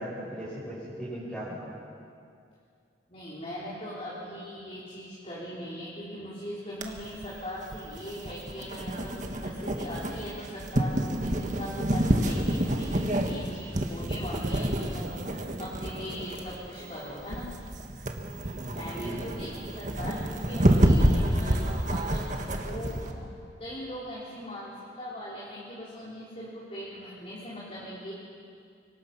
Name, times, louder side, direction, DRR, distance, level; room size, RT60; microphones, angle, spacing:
voice 1, 0.0-1.7 18.7-19.5, right 1 dB, ahead, -10 dB, 5.6 m, -38 dB
voice 2, 3.1-17.5 18.8-23.3 23.6-28.1, equal, 35° left, -7 dB, 3.8 m, -40 dB
sound 1, 6.8-23.1, right 1 dB, 45° right, 1.7 m, -28 dB
25.5 x 23.5 x 6.0 m, 2.5 s
head